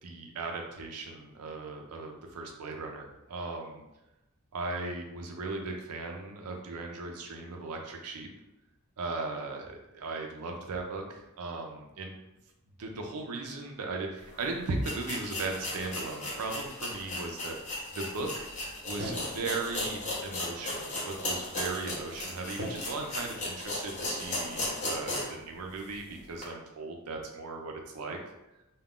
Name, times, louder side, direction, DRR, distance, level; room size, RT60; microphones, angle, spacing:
voice 1, 0.0-3.8 4.5-8.3 9.0-12.1 12.8-17.6 17.9-18.5 18.8-28.2, right 3 dB, 90° right, 2 dB, 0.5 m, -37 dB
sound 1, 14.3-14.4 14.8-25.4 25.8-25.9 26.4-26.5, left 2 dB, 35° left, 0.7 m, -36 dB
sound 2, 19.0-19.5 19.7-21.0 21.3-21.7 22.6-22.7, right 1 dB, 50° right, 0.7 m, -43 dB
2.4 x 2.2 x 3.5 m, 0.95 s
head